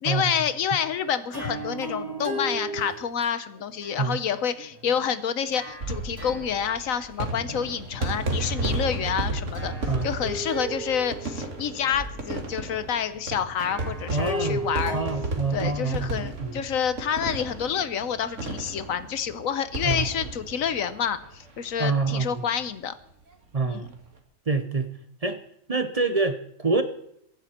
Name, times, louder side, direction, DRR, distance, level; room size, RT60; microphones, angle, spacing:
voice 1, 0.0-9.7 10.0-15.0 15.5-22.9 23.6-23.9, left 8 dB, 85° left, 13 dB, 1.3 m, -28 dB
sound 1, 1.3-2.9 3.2-5.1 5.5-5.9 6.2-6.5 7.4-7.5 7.9-8.0 8.4-8.9 9.5-12.3 13.6-15.3, right 1 dB, 15° right, 3.9 m, -35 dB
sound 2, 5.7-21.7 22.0-22.1 22.3-22.4 23.7-23.9, right 2 dB, 65° right, 2.2 m, -33 dB
voice 2, 14.1-14.7 14.9-16.5 19.8-20.1 21.8-22.4 23.5-23.9 24.5-24.9 25.2-25.4 25.7-26.8, right 3 dB, 35° right, 9 dB, 0.8 m, -26 dB
23.0 x 10.5 x 4.4 m, 0.73 s
omnidirectional pair, 1.4 m